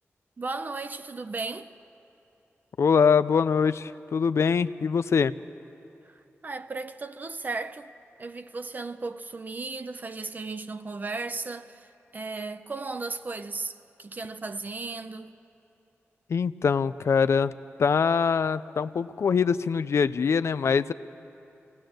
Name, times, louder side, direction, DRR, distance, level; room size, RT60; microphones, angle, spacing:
voice 1, 0.4-1.7 6.1-6.2 6.4-7.9 8.2-11.9 12.1-15.3, right 3 dB, 40° right, 0.7 m, -35 dB
voice 2, 2.8-5.3 16.3-17.5 17.8-20.9, left 6 dB, 70° left, 0.5 m, -23 dB
26.5 x 18.5 x 7.9 m
wide cardioid pair, 150°, 5 cm